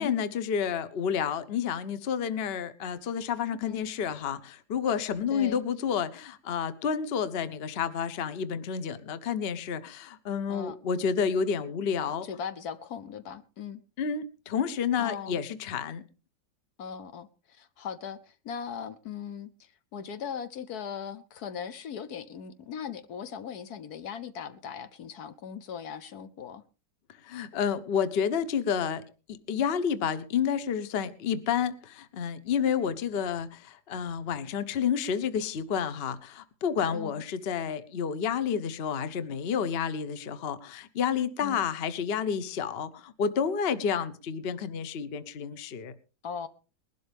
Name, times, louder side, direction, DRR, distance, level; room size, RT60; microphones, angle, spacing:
voice 1, 0.0-12.3 14.0-16.0 27.2-29.0 29.5-45.9, left 7 dB, 45° left, 0.9 m, -30 dB
voice 2, 5.3-5.6 10.5-10.8 12.2-13.8 15.0-15.4 16.8-26.6 36.9-37.1 41.4-41.6 46.2-46.5, left 7 dB, 70° left, 1.3 m, -39 dB
20.5 x 12.0 x 3.4 m
omnidirectional pair, 1.8 m